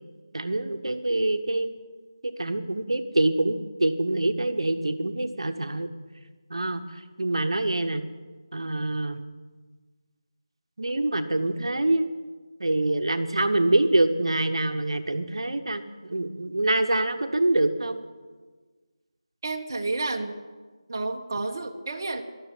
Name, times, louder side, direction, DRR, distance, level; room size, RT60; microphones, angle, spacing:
voice 1, 0.3-1.7 2.2-5.9 6.5-8.0 8.5-9.2 10.8-12.1 12.6-18.0, right 2 dB, 75° right, 7 dB, 1.1 m, -25 dB
voice 2, 19.4-20.4 20.9-22.2, right 3 dB, 40° right, 3 dB, 1.3 m, -30 dB
13.0 x 12.0 x 7.8 m, 1.4 s
figure-of-eight pair, 170°, 3 cm